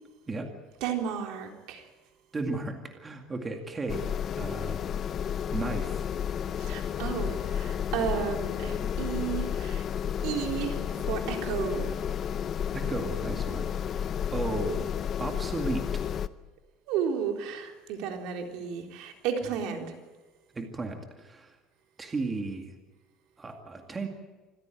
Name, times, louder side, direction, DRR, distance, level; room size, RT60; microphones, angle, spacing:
voice 1, 0.8-1.9 6.6-9.8 10.2-12.0 16.9-19.9, right 7 dB, 70° right, 3 dB, 3.8 m, -33 dB
voice 2, 2.3-4.8 5.5-6.1 12.7-14.0 14.3-14.9 15.2-16.0 20.5-21.5 22.0-22.7 23.4-24.1, right 3 dB, 20° right, 4 dB, 2.1 m, -35 dB
sound 1, 3.9-16.3, left 8 dB, 35° left, 0.7 m, -31 dB
26.0 x 15.5 x 9.1 m, 1.2 s
cardioid pair, 145°, 0 cm